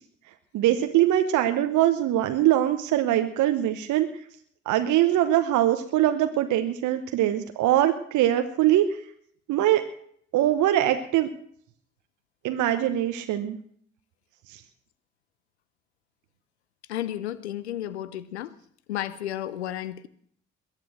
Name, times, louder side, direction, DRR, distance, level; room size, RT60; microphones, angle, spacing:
voice 1, 0.5-4.1 4.7-9.0 9.5-9.8 10.3-11.3 12.4-13.6 14.5-14.6, right 12 dB, 65° right, 8 dB, 1.1 m, -22 dB
voice 2, 16.9-18.5 18.9-20.1, left 12 dB, 90° left, 18 dB, 0.6 m, -32 dB
21.5 x 8.8 x 6.3 m, 0.63 s
hypercardioid pair, 40°, 32 cm